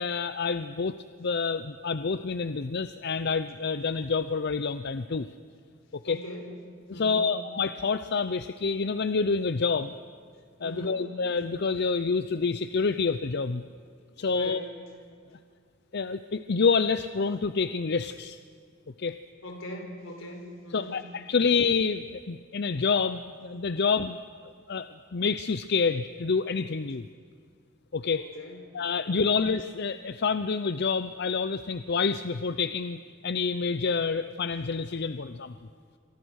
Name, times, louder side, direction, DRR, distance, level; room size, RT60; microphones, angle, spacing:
voice 1, 0.0-5.3 5.9-6.2 6.9-9.9 10.6-13.6 14.2-14.6 15.9-18.4 19.0-19.2 20.7-24.2 24.7-27.1 27.9-28.3 28.7-35.5, left 5 dB, 55° left, 11 dB, 0.6 m, -28 dB
voice 2, 6.1-6.5 6.9-7.3 10.6-11.0 14.3-14.7 19.4-21.0 28.1-29.4, equal, 85° left, 3 dB, 4.8 m, -41 dB
28.5 x 24.5 x 6.4 m, 2.1 s
head